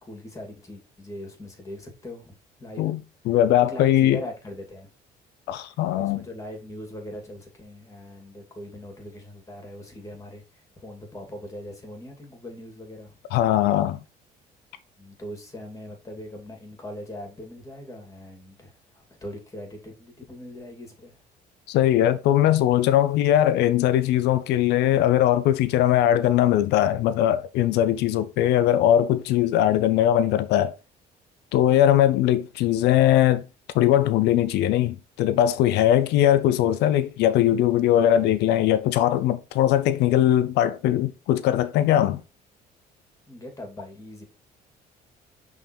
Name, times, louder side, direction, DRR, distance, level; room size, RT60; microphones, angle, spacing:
voice 1, 0.0-2.9 3.7-4.9 6.0-13.1 15.0-21.2 43.3-44.2, left 1 dB, 20° left, 2.6 m, -40 dB
voice 2, 3.3-4.2 5.5-6.2 13.3-14.0 21.7-30.7 31.5-33.4 33.7-42.2, left 12 dB, 85° left, 0.6 m, -20 dB
5.8 x 3.9 x 4.3 m
cardioid pair, 110°, 17 cm